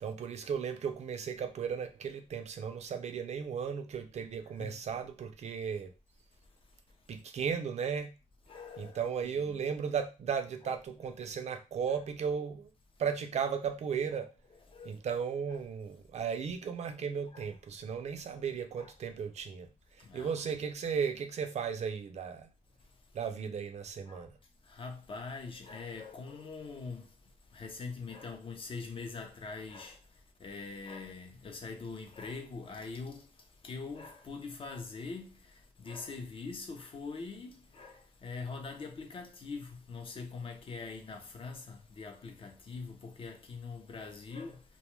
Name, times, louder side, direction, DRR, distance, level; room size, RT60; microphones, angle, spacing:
voice 1, 0.0-5.9 7.1-8.1 8.8-12.7 13.0-14.3 14.8-19.7 20.0-22.5 23.1-24.4, right 6 dB, 55° right, 0.4 m, -35 dB
voice 2, 8.5-9.7 10.6-10.7 11.0-11.1 11.9-12.0 14.7-14.9 17.3-17.5 18.7-18.9 20.0-20.4 22.2-22.3 24.1-24.3 24.7-27.1 27.5-30.0 30.4-33.3 33.6-44.6, left 4 dB, 40° left, 0.5 m, -43 dB
2.1 x 2.1 x 3.0 m
wide cardioid pair, 140°, 13 cm